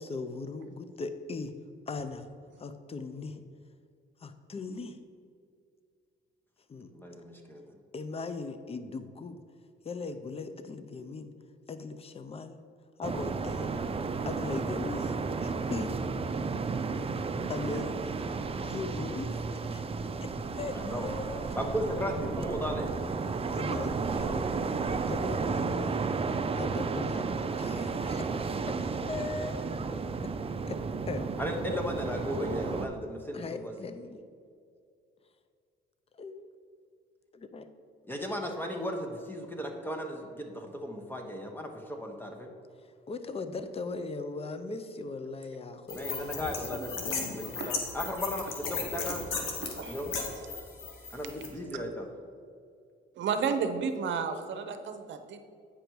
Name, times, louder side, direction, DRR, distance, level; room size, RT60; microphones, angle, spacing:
voice 1, 0.0-1.6 1.9-2.3 2.6-3.4 4.2-5.0 6.7-6.9 7.9-9.4 9.8-11.3 11.7-12.6 13.0-13.7 14.3-15.1 15.4-15.9 17.5-18.2 18.6-19.3 19.7-19.8 20.2-21.4 23.5-24.5 25.1-27.3 27.6-28.8 29.1-29.9 30.2-30.3 30.7-31.3 33.3-34.2 36.1-36.5 37.3-37.7 43.1-46.6, left 3 dB, 30° left, 10 dB, 0.6 m, -39 dB
voice 2, 6.9-7.6 17.7-17.8 20.7-22.9 31.4-33.7 38.1-42.5 45.9-49.2 49.9-50.1 51.1-52.1, equal, 10° left, 2 dB, 1.1 m, -36 dB
sound 1, 13.0-32.9, right 4 dB, 30° right, 0.5 m, -33 dB
sound 2, 45.9-51.5, left 4 dB, 90° left, 1.2 m, -36 dB
voice 3, 53.2-55.4, right 6 dB, 70° right, 8 dB, 0.7 m, -31 dB
8.8 x 5.2 x 4.6 m, 2.3 s
cardioid pair, 90°, 20 cm